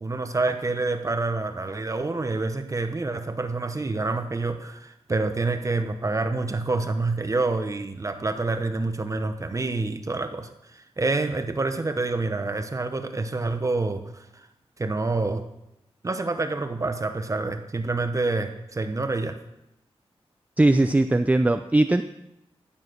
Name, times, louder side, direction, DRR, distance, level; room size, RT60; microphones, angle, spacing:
voice 1, 0.0-14.5 14.8-15.4 16.0-19.4, right 3 dB, 30° right, 8 dB, 0.9 m, -27 dB
voice 2, 20.6-22.0, right 2 dB, 15° right, 10 dB, 0.4 m, -19 dB
14.5 x 7.3 x 6.4 m, 0.87 s
wide cardioid pair, 105°, 10 cm